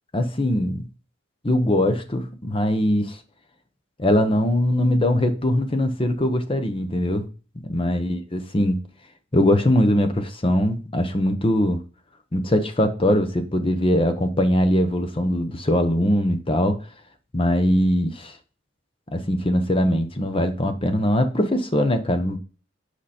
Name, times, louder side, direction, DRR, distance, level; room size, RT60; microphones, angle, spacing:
voice 1, 0.1-0.9 1.4-3.2 4.0-7.3 7.7-8.8 9.3-11.8 12.3-16.8 17.3-18.3 19.1-22.4, left 1 dB, 30° left, 7 dB, 1.0 m, -21 dB
7.8 x 5.0 x 4.3 m, 0.36 s
head